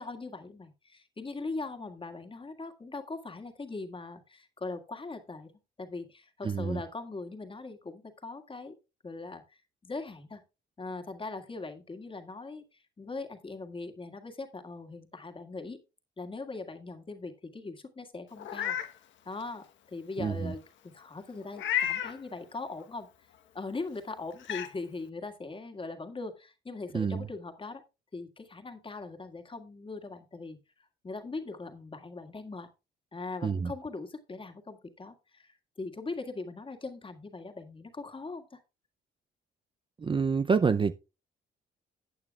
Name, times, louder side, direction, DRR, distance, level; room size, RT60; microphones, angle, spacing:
voice 1, 0.0-5.5 5.8-8.7 9.0-10.4 10.8-15.8 16.2-18.8 19.3-23.1 23.5-27.8 28.1-30.6 31.0-32.7 33.1-38.6, left 3 dB, 25° left, 1.8 m, -40 dB
voice 2, 6.4-6.8 20.2-20.5 26.9-27.3 33.4-33.7 40.0-40.9, right 5 dB, 25° right, 0.5 m, -27 dB
Meow, 18.4-18.9 19.4-19.5 21.5-22.2 23.8-23.9 24.4-24.7, left 10 dB, 70° left, 1.2 m, -31 dB
14.5 x 8.7 x 2.4 m
cardioid pair, 90°, 20 cm